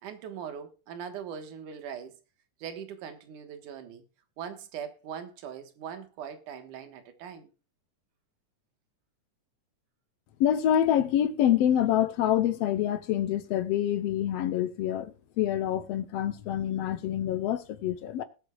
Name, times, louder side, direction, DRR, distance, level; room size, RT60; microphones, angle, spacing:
voice 1, 0.0-2.2 2.6-4.0 4.4-7.5, right 8 dB, 85° right, 2.9 m, -41 dB
voice 2, 10.4-18.2, left 11 dB, 70° left, 1.6 m, -26 dB
20.0 x 8.1 x 2.4 m
omnidirectional pair, 3.5 m